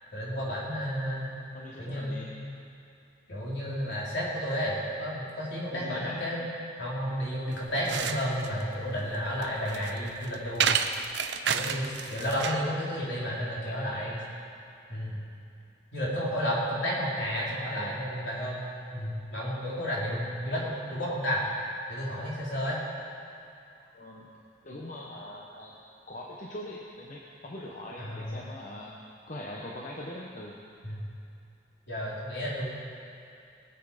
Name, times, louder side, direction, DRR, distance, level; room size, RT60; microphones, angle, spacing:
voice 1, 0.1-1.3 1.8-2.3 3.3-6.5 6.8-10.7 11.5-14.2 14.9-15.2 15.9-18.6 18.9-21.4 21.9-22.8 28.0-28.4 30.8-31.1 31.9-32.7, equal, 65° left, -6 dB, 3.9 m, -32 dB
voice 2, 1.5-2.3 5.7-6.2 13.5-14.2 17.4-18.1 23.8-24.3 24.6-25.8 26.1-29.0 29.3-30.5, left 1 dB, 40° left, -3 dB, 1.1 m, -42 dB
sound 1, 7.5-12.7, right 7 dB, 65° right, 0.6 m, -31 dB
20.0 x 8.6 x 5.1 m, 2.6 s
head